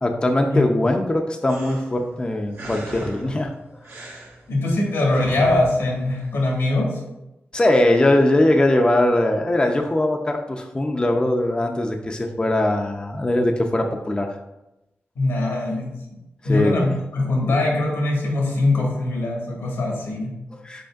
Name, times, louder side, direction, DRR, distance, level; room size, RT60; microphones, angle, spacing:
voice 1, 0.0-3.5 7.5-14.3 16.4-16.8 20.5-20.9, left 1 dB, 20° left, 3 dB, 0.4 m, -21 dB
sound 1, 1.5-6.6, right 1 dB, 85° right, 1.2 m, -39 dB
voice 2, 4.5-7.0 15.1-15.9 16.4-20.4, left 2 dB, 85° left, -3 dB, 1.6 m, -22 dB
5.1 x 4.3 x 2.4 m, 0.93 s
cardioid pair, 75°, 4 cm